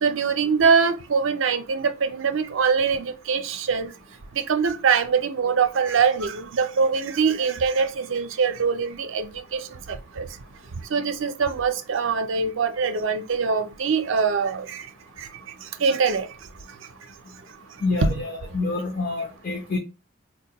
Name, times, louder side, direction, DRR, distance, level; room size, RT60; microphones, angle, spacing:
voice 1, 0.0-3.9 4.3-10.3 10.9-14.9 15.2-15.3 15.8-16.3 18.0-18.1, right 5 dB, 65° right, 0.5 m, -23 dB
voice 2, 17.8-19.8, left 3 dB, 40° left, 0.6 m, -27 dB
4.4 x 2.2 x 2.8 m
head